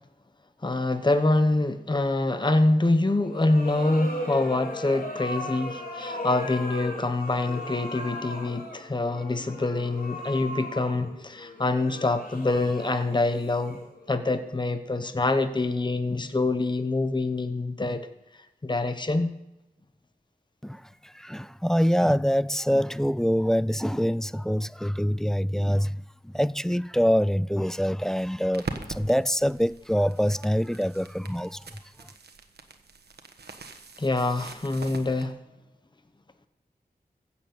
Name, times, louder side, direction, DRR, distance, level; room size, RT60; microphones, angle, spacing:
voice 1, 0.6-13.8 14.1-18.1 18.6-19.3 34.0-35.3, left 2 dB, 30° left, 1.0 m, -25 dB
sound 1, 3.2-14.2, left 1 dB, 60° left, 3.6 m, -37 dB
voice 2, 20.6-26.0 26.2-31.6, equal, 5° left, 0.3 m, -25 dB
sound 2, 28.5-35.3, right 3 dB, 85° right, 1.3 m, -42 dB
15.5 x 7.2 x 7.9 m
wide cardioid pair, 70°, 16 cm